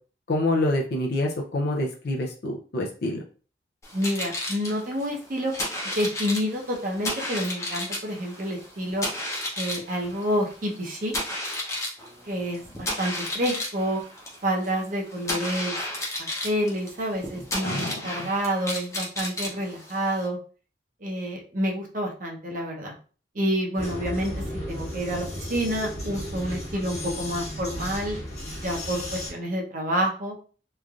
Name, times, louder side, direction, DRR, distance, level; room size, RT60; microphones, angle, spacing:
voice 1, 0.3-3.2 17.6-18.3, left 1 dB, 60° left, 0 dB, 0.4 m, -27 dB
sound 1, 3.8-20.3, left 1 dB, 15° left, 0.7 m, -33 dB
voice 2, 3.9-5.5 6.0-9.1 9.6-11.1 12.3-14.0 14.4-15.7 16.2-20.4 21.0-22.9 23.3-28.2 28.6-30.4, equal, 45° right, 0 dB, 0.7 m, -28 dB
Vehicle, 23.7-29.3, left 1 dB, 40° left, 1.1 m, -34 dB
3.1 x 2.5 x 2.3 m, 0.39 s
head